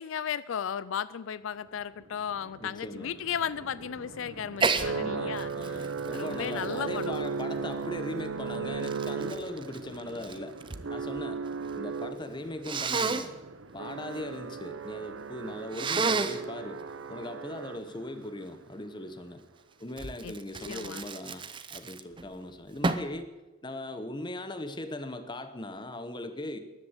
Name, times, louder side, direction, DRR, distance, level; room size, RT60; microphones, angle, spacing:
voice 1, 0.0-7.1 20.2-20.3 20.7-21.0, left 8 dB, 75° left, 17 dB, 0.4 m, -35 dB
sound 1, 2.0-18.2, right 5 dB, 70° right, 0.8 m, -37 dB
voice 2, 2.6-3.1 4.9-10.6 10.9-11.4 11.7-13.4 13.7-19.4 19.8-23.3 23.6-26.6, left 1 dB, 20° left, 10 dB, 1.1 m, -39 dB
Sneeze, 4.6-4.9 5.4-7.7 8.4-10.9 11.2-11.8 12.6-13.3 15.7-16.5 20.0-22.3 22.8-23.2, right 4 dB, 25° right, 0.7 m, -31 dB
13.0 x 11.0 x 8.2 m, 1.1 s
head